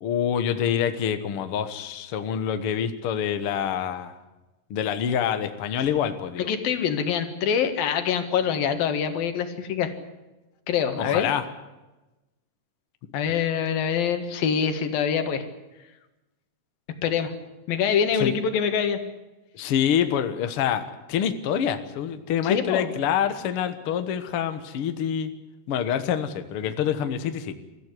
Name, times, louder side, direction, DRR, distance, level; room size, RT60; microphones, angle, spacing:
voice 1, 0.0-4.2 4.7-6.5 11.0-11.4 13.3-13.4 18.1-18.3 19.5-25.3 25.7-27.6, left 9 dB, 55° left, 9 dB, 1.8 m, -26 dB
voice 2, 6.4-9.9 10.7-11.3 13.1-15.5 17.0-17.3 17.7-19.0 22.4-23.0, left 7 dB, 90° left, 8 dB, 3.5 m, -25 dB
24.0 x 14.0 x 9.9 m, 1.1 s
omnidirectional pair, 4.0 m